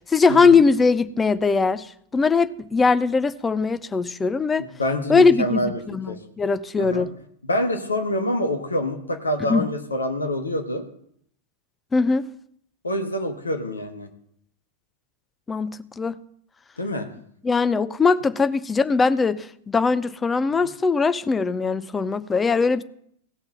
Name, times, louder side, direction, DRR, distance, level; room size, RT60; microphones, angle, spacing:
voice 1, 0.1-1.9 2.1-4.7 5.1-7.1 9.5-9.7 11.9-12.3 15.5-16.2 17.4-22.8, left 4 dB, 15° left, 0.6 m, -20 dB
voice 2, 4.6-5.8 6.1-6.2 6.8-7.0 7.4-10.8 12.8-14.1 16.8-17.1, left 1 dB, 75° left, 1.4 m, -26 dB
17.5 x 5.8 x 6.7 m
figure-of-eight pair, 90°, 0 cm